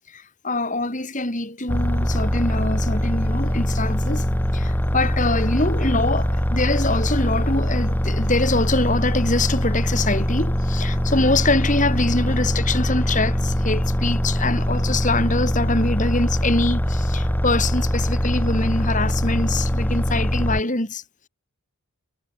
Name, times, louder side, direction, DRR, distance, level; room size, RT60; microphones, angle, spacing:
voice 1, 0.1-21.0, left 2 dB, 35° left, 3.4 m, -24 dB
sound 1, 1.7-20.6, equal, 10° left, 1.2 m, -22 dB
head